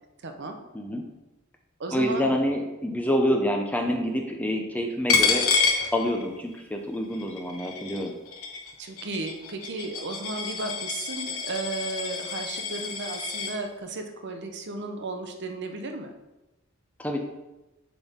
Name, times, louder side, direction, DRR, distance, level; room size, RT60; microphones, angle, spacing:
voice 1, 0.2-0.6 1.8-2.3 8.8-16.1, right 3 dB, 55° right, 5 dB, 0.7 m, -34 dB
voice 2, 1.9-5.4 5.9-8.1 17.0-17.2, equal, 5° left, 3 dB, 0.6 m, -27 dB
Coin (dropping), 5.1-6.6 6.9-13.6, left 5 dB, 80° left, 0.9 m, -28 dB
6.1 x 5.3 x 3.6 m, 1.0 s
head